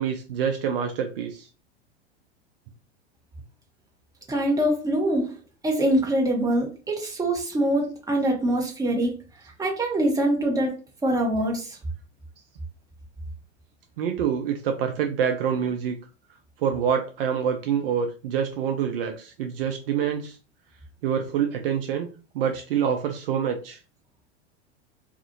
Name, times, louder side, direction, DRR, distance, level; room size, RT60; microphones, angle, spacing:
voice 1, 0.0-1.5 14.0-15.9 16.6-20.4 21.0-22.1 22.3-23.8, right 8 dB, 55° right, 5 dB, 0.5 m, -26 dB
voice 2, 4.3-5.3 5.6-9.2 9.6-10.8 11.0-11.8, right 1 dB, 10° right, 0 dB, 1.0 m, -24 dB
2.4 x 2.4 x 2.7 m, 0.34 s
figure-of-eight pair, 90°, 34 cm